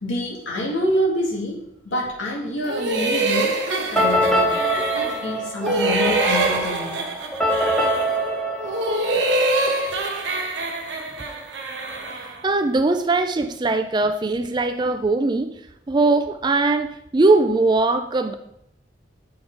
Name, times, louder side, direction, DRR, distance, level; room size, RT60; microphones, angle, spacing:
voice 1, 0.0-7.0, left 1 dB, 80° left, -2 dB, 2.1 m, -27 dB
sound 1, 2.6-5.3 5.6-8.2 8.6-12.4, right 2 dB, 65° right, 1.1 m, -25 dB
sound 2, 3.9-9.7, equal, 5° left, 0.9 m, -24 dB
voice 2, 12.2-15.5 15.9-18.3, right 3 dB, 20° right, 8 dB, 0.4 m, -20 dB
7.3 x 4.3 x 4.6 m, 0.76 s
head